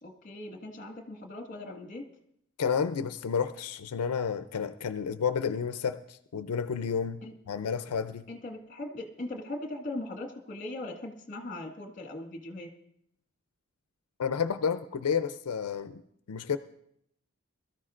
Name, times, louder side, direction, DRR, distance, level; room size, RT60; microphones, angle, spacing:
voice 1, 0.0-2.0 7.2-7.3 8.3-12.7, left 2 dB, 35° left, 3 dB, 1.6 m, -39 dB
voice 2, 2.6-7.2 7.5-8.3 14.2-16.0 16.3-16.6, left 6 dB, 85° left, 10 dB, 0.5 m, -30 dB
22.0 x 13.5 x 2.5 m, 0.73 s
head